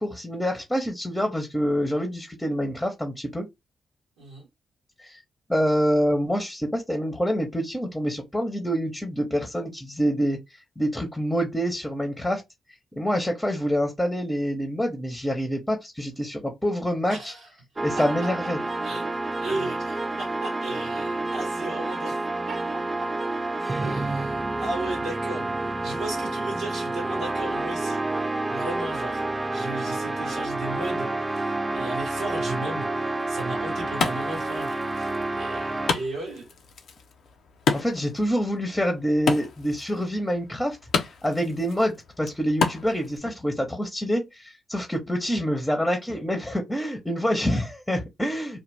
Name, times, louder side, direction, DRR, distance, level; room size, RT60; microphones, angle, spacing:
voice 1, 0.0-3.5 5.0-5.2 5.5-10.4 10.8-12.4 12.9-17.3 17.8-18.6 37.7-48.6, equal, 10° left, 0.9 m, -26 dB
voice 2, 4.2-4.5 17.1-17.5 18.0-18.3 18.8-22.2 22.5-23.1 23.8-29.2 29.5-36.5, right 2 dB, 85° right, 1.1 m, -36 dB
sound 1, 17.8-35.9, right 2 dB, 30° right, 0.3 m, -29 dB
Wood, 33.2-43.2, left 5 dB, 70° left, 0.5 m, -32 dB
2.4 x 2.2 x 3.2 m
hypercardioid pair, 45°, 0 cm